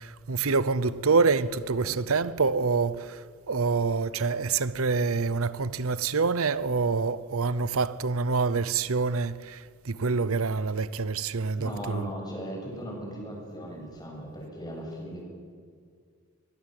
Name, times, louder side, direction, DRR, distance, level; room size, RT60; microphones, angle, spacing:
voice 1, 0.0-12.1, right 4 dB, 75° right, 0.8 m, -26 dB
voice 2, 11.6-15.3, equal, 20° left, 7.8 m, -38 dB
23.5 x 22.5 x 7.9 m
head